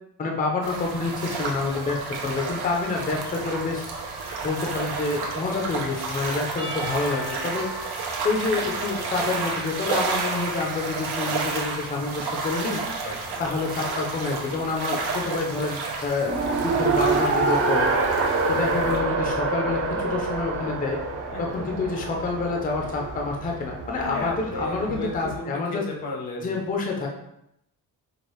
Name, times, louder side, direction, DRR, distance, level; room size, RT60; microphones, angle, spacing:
voice 1, 0.2-3.8 4.4-7.7 8.2-12.8 13.4-17.9 18.5-21.0 21.4-25.9 26.4-27.1, left 3 dB, 25° left, 0 dB, 0.4 m, -28 dB
sound 1, 0.6-19.0, right 4 dB, 90° right, 0.8 m, -31 dB
Percussion / Church bell, 6.6-10.2, right 1 dB, 65° right, 1.0 m, -40 dB
voice 2, 13.0-13.7 21.3-21.7 24.0-26.5, left 2 dB, 80° left, 1 dB, 1.0 m, -34 dB
Race car auto racing, 16.3-25.4, right 3 dB, 40° right, 0.5 m, -26 dB
4.6 x 2.4 x 3.0 m, 0.81 s
wide cardioid pair, 170°, 37 cm